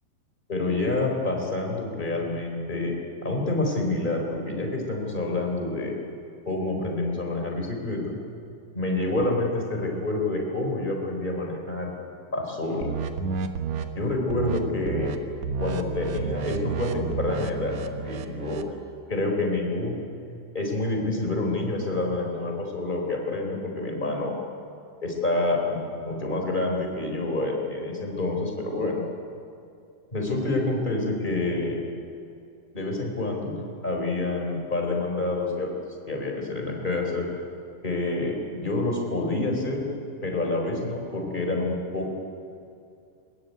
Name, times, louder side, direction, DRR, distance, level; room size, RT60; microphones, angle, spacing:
voice 1, 0.5-2.9 3.2-6.0 6.5-8.2 8.7-11.9 12.3-12.9 14.0-15.2 15.6-18.7 19.1-20.0 20.5-24.4 25.0-29.0 30.1-31.8 32.7-33.5 33.8-35.7 36.1-37.3 37.8-39.9 40.2-42.1, left 2 dB, 10° left, 1 dB, 3.6 m, -27 dB
sound 1, 12.8-13.8 14.3-14.6 14.9-15.2 15.4-18.7, right 6 dB, 80° right, 1.5 m, -31 dB
22.5 x 21.0 x 9.5 m, 2.5 s
omnidirectional pair, 5.1 m